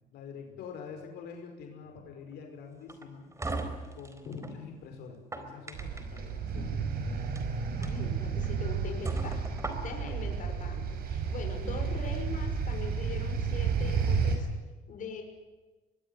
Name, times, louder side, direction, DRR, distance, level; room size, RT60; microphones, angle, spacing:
voice 1, 0.1-3.3 3.9-6.9, left 6 dB, 75° left, 4 dB, 5.6 m, -46 dB
sound 1, 2.9-4.6 5.1-6.2 7.2-7.4 7.8-7.9 8.4-8.5 9.0-10.2, right 2 dB, 15° right, 4.2 m, -37 dB
voice 2, 4.3-4.6 6.5-6.7 7.8-9.4 9.8-14.5 14.9-15.2, left 5 dB, 50° left, 4 dB, 5.8 m, -41 dB
sound 2, 5.7-14.4, right 6 dB, 65° right, 6.0 m, -32 dB
24.5 x 21.0 x 10.0 m, 1.2 s
cardioid pair, 110°, 17 cm